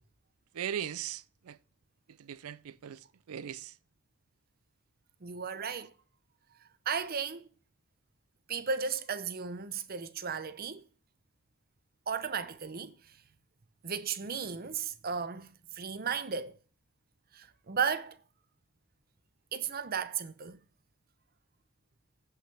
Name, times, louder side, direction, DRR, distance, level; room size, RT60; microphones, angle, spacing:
voice 1, 0.5-1.6 2.2-3.7, right 9 dB, 80° right, 0.4 m, -39 dB
voice 2, 5.2-5.9 6.9-7.5 8.5-10.8 12.1-12.9 13.8-16.5 17.3-18.2 19.5-20.6, right 6 dB, 45° right, 0.7 m, -35 dB
16.0 x 5.7 x 3.4 m
head